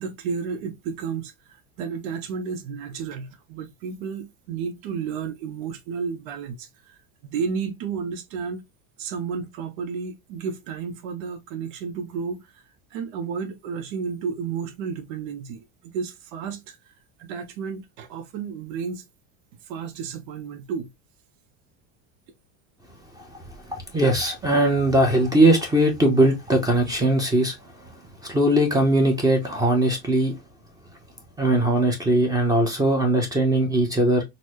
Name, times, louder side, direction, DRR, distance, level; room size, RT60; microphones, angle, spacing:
voice 1, 0.0-8.6 9.0-12.6 12.9-16.8 17.3-19.0 19.7-20.9, right 6 dB, 65° right, 0.8 m, -32 dB
voice 2, 23.9-27.6 28.3-30.3 31.4-34.2, right 1 dB, 10° right, 0.7 m, -20 dB
4.0 x 2.1 x 3.0 m
supercardioid pair, 145°, 41 cm